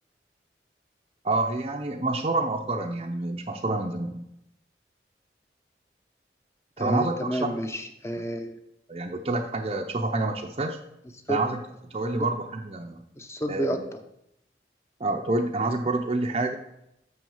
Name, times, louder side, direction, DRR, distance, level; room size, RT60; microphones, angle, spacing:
voice 1, 1.2-4.2 6.8-7.5 8.9-10.8 11.3-11.6 11.9-13.0 13.5-13.8 15.0-16.6, right 2 dB, 35° right, 1 dB, 0.5 m, -28 dB
voice 2, 6.8-8.6 11.3-11.4 13.2-14.0, right 1 dB, 15° left, 7 dB, 0.7 m, -30 dB
6.2 x 6.0 x 7.2 m, 0.82 s
head